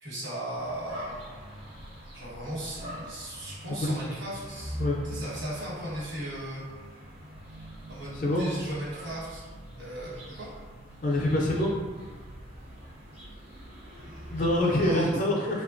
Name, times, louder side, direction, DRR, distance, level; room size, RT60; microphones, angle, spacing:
voice 1, 0.0-1.1 2.1-4.8 5.0-6.6 7.9-9.4 9.8-10.5 13.9-14.3 14.8-15.1, right 1 dB, 70° right, -7 dB, 1.2 m, -37 dB
sound 1, 0.5-14.9, equal, 30° right, 0.5 m, -43 dB
voice 2, 8.1-8.5 11.0-11.7 14.3-15.6, left 1 dB, 45° left, -2 dB, 0.4 m, -25 dB
3.0 x 2.2 x 2.5 m, 1.4 s
head